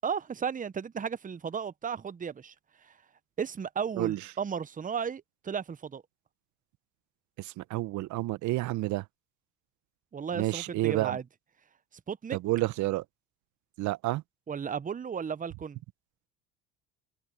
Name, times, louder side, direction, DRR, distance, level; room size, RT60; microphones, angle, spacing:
voice 1, 0.0-2.5 3.4-6.0 10.1-11.2 12.1-12.4 14.5-15.8, right 7 dB, 25° right, 1.0 m, -34 dB
voice 2, 7.4-9.0 10.3-11.2 12.3-13.0 13.8-14.2, right 18 dB, 60° right, 1.1 m, -30 dB
hypercardioid pair, 70°, 33 cm